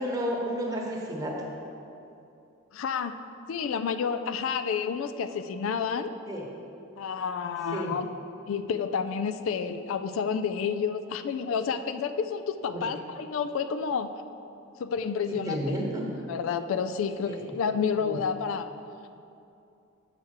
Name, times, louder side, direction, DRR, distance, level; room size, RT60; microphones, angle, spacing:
voice 1, 0.0-1.4 6.3-6.4 7.7-7.9 12.7-12.9 15.3-16.1 17.3-17.5 18.0-18.2, equal, 20° right, -2 dB, 1.1 m, -32 dB
voice 2, 2.7-3.1 3.5-6.1 7.0-8.1 8.5-14.1 14.8-15.8 16.3-18.7, left 6 dB, 75° left, 10 dB, 0.3 m, -30 dB
7.0 x 4.9 x 6.4 m, 2.7 s
head